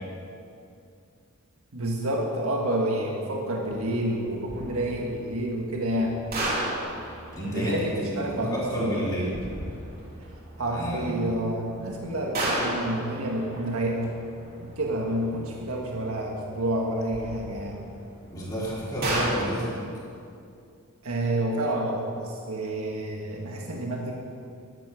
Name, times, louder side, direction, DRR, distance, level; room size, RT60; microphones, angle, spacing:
voice 1, 1.7-6.2 7.4-9.1 9.3-9.5 10.6-14.2 14.6-17.8 21.0-24.2, right 1 dB, 80° right, -1 dB, 1.6 m, -29 dB
sound 1, 3.7-19.3, right 1 dB, 45° right, 3.2 m, -36 dB
voice 2, 7.3-9.3 10.6-11.2 18.3-19.8, equal, 15° left, -8 dB, 4.1 m, -30 dB
11.5 x 11.0 x 6.9 m, 2.4 s
head